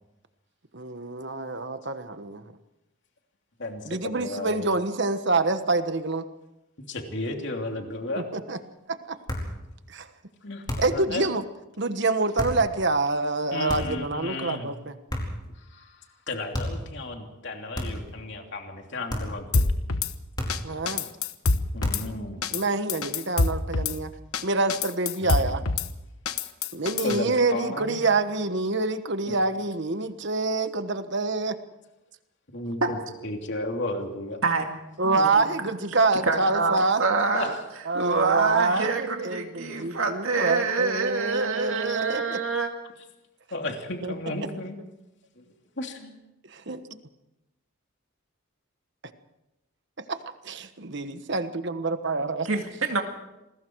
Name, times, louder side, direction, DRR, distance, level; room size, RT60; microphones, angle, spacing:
voice 1, 0.7-2.4 3.8-6.3 8.3-8.6 8.9-9.2 9.9-10.1 10.8-11.4 11.8-14.9 20.6-21.1 22.5-24.1 24.4-25.6 26.7-31.6 35.0-37.0 37.9-42.4 44.0-44.1 46.5-46.8 50.1-50.2 50.4-52.5, right 3 dB, 55° right, 9 dB, 1.3 m, -26 dB
voice 2, 3.6-4.7 6.8-8.2 10.4-10.6 10.9-11.2 13.5-14.7 15.5-19.7 21.7-22.4 25.2-25.7 27.0-28.0 29.3-29.4 32.5-33.0 33.2-34.4 37.3-37.5 38.7-38.9 43.5-44.8 45.4-45.5 45.8-46.1, left 2 dB, 55° left, 3 dB, 3.0 m, -34 dB
sound 1, 9.3-9.6 10.7-11.0 12.4-12.6 13.7-14.1 15.1-15.5 16.5-16.9 17.7-18.1 19.1-19.4 20.4-20.8 21.8-22.2, left 1 dB, 20° left, 4.7 m, -32 dB
Drum kit / Snare drum, 19.5-20.1 20.5-20.6 20.9-22.0 22.4-22.6 22.9-24.0 24.3-24.4 24.7-25.9 26.3-27.2, left 3 dB, 85° left, 1.2 m, -25 dB
voice 3, 35.0-35.5 36.3-37.5 37.9-42.7 52.4-53.0, right 4 dB, 75° right, 3 dB, 2.2 m, -26 dB
28.0 x 21.5 x 4.7 m, 0.96 s
head